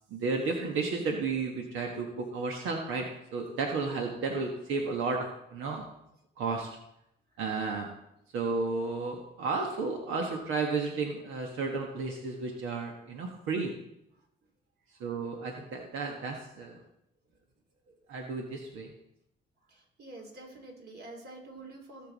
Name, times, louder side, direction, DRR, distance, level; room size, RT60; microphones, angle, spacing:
voice 1, 0.1-3.0 3.3-5.9 6.4-6.8 7.4-7.9 8.3-13.7 15.0-16.7 18.1-18.9, right 4 dB, 85° right, 2 dB, 1.4 m, -32 dB
voice 2, 19.7-22.1, right 2 dB, 55° right, 1 dB, 3.0 m, -47 dB
17.0 x 6.9 x 4.1 m, 0.81 s
cardioid pair, 90°, 20 cm